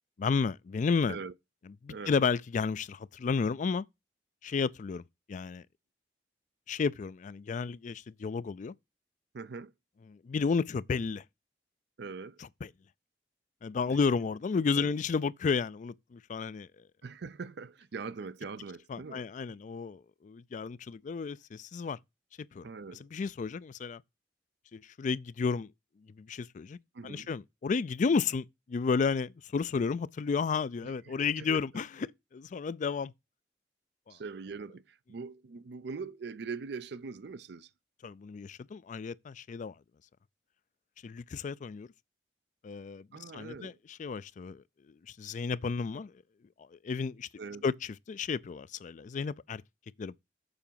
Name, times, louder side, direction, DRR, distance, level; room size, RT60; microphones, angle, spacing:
voice 1, 0.2-1.2 1.8-3.9 4.4-5.0 5.3-5.6 6.7-8.7 10.1-11.2 13.6-16.7 18.9-22.0 22.5-22.7 23.1-24.0 24.7-25.7 26.2-26.8 27.0-33.1 34.1-34.2 38.0-39.7 41.0-41.9 42.6-43.1 43.3-43.7 44.0-44.6 45.1-46.1 46.6-47.3 47.6-47.7 48.1-49.6 50.0-50.2, left 5 dB, 45° left, 0.4 m, -32 dB
voice 2, 9.3-9.7 12.0-12.4 13.9-14.0 14.8-14.9 17.0-19.3 22.6-23.1 26.9-27.3 30.8-31.8 34.1-37.7 43.1-43.8 47.4-47.7, right 4 dB, 65° right, 0.5 m, -42 dB
7.0 x 4.6 x 5.6 m
head